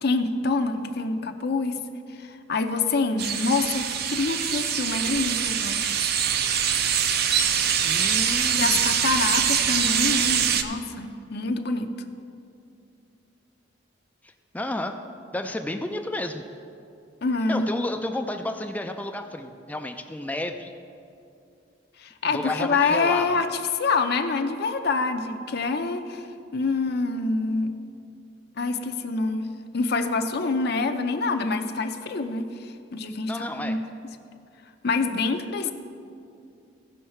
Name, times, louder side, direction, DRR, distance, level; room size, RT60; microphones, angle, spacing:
voice 1, 0.0-1.8 2.1-5.8 8.5-11.9 17.2-17.7 22.0-23.5 23.7-26.3 26.5-27.8 28.6-34.1 34.8-35.7, left 3 dB, 60° left, 6 dB, 0.6 m, -26 dB
sound 1, 3.2-10.6, right 8 dB, 60° right, 0.5 m, -24 dB
voice 2, 7.8-9.0 14.2-15.0 15.3-16.4 17.5-20.7 22.3-23.3 33.3-33.8 35.6-35.7, left 1 dB, 10° left, 5 dB, 0.4 m, -31 dB
16.5 x 5.5 x 4.4 m, 2.5 s
head